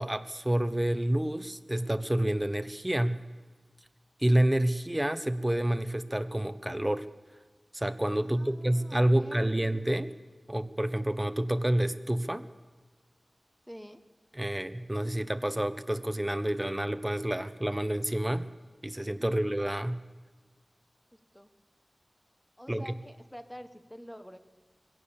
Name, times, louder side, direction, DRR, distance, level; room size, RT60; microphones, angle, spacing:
voice 1, 0.0-3.2 4.2-7.1 7.7-10.1 10.5-12.5 14.3-18.5 18.8-20.0 22.7-22.9, right 1 dB, 15° right, 11 dB, 1.0 m, -28 dB
voice 2, 8.2-9.8 13.7-14.0 19.2-19.4 21.1-21.5 22.6-24.4, equal, 5° left, 9 dB, 1.4 m, -47 dB
22.0 x 17.0 x 7.2 m, 1.3 s
wide cardioid pair, 75°, 0 cm